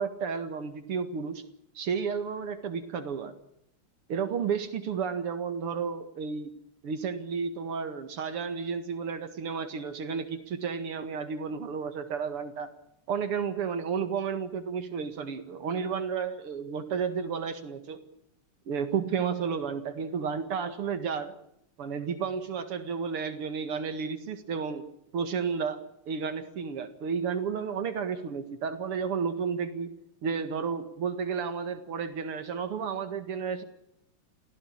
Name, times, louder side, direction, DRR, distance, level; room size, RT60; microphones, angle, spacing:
voice 1, 0.0-1.4 1.7-3.4 4.1-6.5 6.8-12.7 13.1-18.0 18.7-21.4 21.8-24.9 25.1-29.9 30.2-33.6, right 6 dB, 90° right, 9 dB, 2.8 m, -32 dB
27.5 x 16.5 x 8.8 m, 0.76 s
omnidirectional pair, 2.4 m